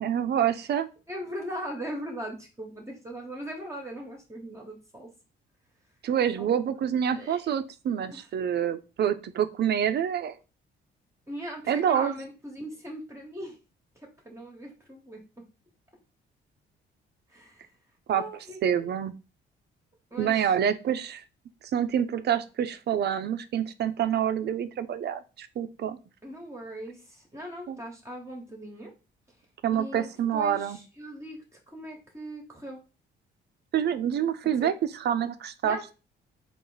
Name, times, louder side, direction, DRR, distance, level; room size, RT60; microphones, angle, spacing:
voice 1, 0.0-0.9 6.0-10.4 11.7-12.1 18.1-18.2 18.6-19.2 20.2-21.2 21.7-26.0 27.7-27.8 29.6-30.8 33.7-35.8, right 9 dB, 55° right, 11 dB, 0.5 m, -27 dB
voice 2, 1.1-5.1 6.3-6.5 7.1-7.5 8.1-8.3 11.3-13.6 14.0-15.4 17.3-17.7 18.1-18.6 20.1-20.4 26.2-28.9 29.7-32.8 34.6-34.7 35.6-35.8, equal, 15° right, 0 dB, 1.0 m, -39 dB
3.9 x 2.5 x 3.9 m, 0.31 s
cardioid pair, 90°, 20 cm